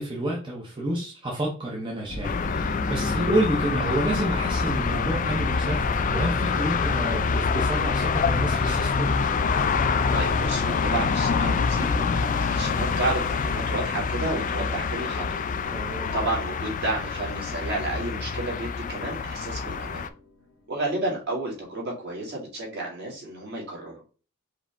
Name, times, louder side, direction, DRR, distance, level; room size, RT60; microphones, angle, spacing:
voice 1, 0.0-9.1 15.7-16.1, right 1 dB, 25° right, -2 dB, 0.7 m, -29 dB
sound 1, 2.1-20.4, left 1 dB, 65° left, 1.1 m, -36 dB
sound 2, 2.2-20.1, left 5 dB, 35° left, 0.3 m, -26 dB
voice 2, 10.1-15.4 16.0-20.1 20.7-23.9, right 2 dB, 50° right, -3 dB, 2.1 m, -31 dB
4.9 x 2.9 x 3.4 m, 0.37 s
head